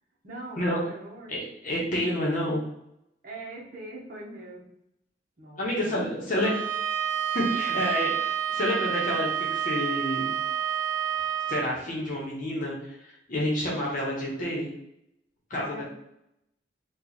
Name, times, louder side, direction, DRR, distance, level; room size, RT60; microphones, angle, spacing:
voice 1, 0.2-1.3 3.2-4.7 5.4-6.2 7.5-7.8 11.2-11.3 15.6-15.8, right 2 dB, 50° right, -3 dB, 0.8 m, -42 dB
voice 2, 1.3-2.6 5.6-6.5 7.3-10.3 11.5-14.7 15.5-15.8, left 1 dB, 45° left, -4 dB, 0.9 m, -29 dB
Bowed string instrument, 6.4-11.7, right 9 dB, 85° right, 0.4 m, -29 dB
3.0 x 2.3 x 3.9 m, 0.81 s
head